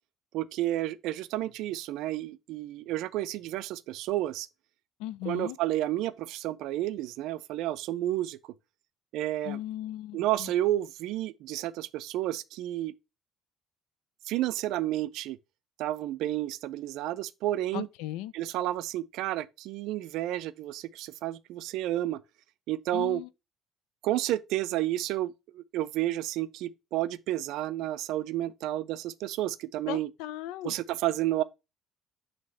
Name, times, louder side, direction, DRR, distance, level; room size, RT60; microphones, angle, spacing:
voice 1, 0.3-4.5 5.3-8.4 9.1-9.6 10.1-12.9 14.3-15.4 15.8-17.9 18.3-22.2 22.7-23.2 24.0-30.1 30.6-31.4, right 14 dB, 75° right, 0.4 m, -31 dB
voice 2, 5.0-5.6 9.4-10.5 17.7-18.3 22.9-23.3 29.9-30.7, left 14 dB, 85° left, 0.4 m, -37 dB
6.2 x 2.9 x 5.5 m
supercardioid pair, 80°, 0 cm